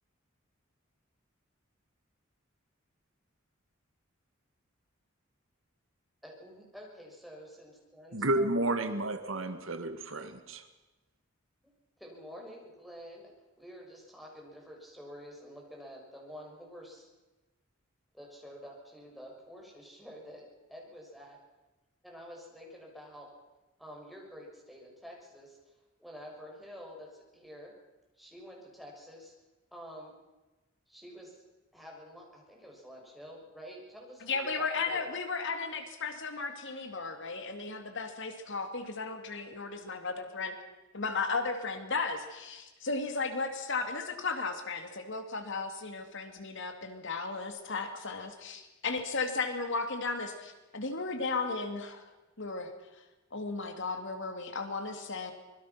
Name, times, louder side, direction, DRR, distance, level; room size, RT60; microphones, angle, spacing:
voice 1, 6.2-8.6 12.0-13.3 13.6-17.1 18.1-21.4 22.0-23.3 23.8-25.6 26.0-27.7 28.2-29.3 29.7-30.1 30.9-31.4 31.7-35.1, equal, ahead, -1 dB, 6.7 m, -49 dB
voice 2, 8.1-10.6, right 1 dB, 70° right, 9 dB, 1.9 m, -31 dB
voice 3, 34.2-40.5 40.9-52.0 52.4-52.7 53.3-55.3, left 4 dB, 65° left, 6 dB, 2.8 m, -35 dB
25.5 x 22.0 x 6.0 m, 1.1 s
head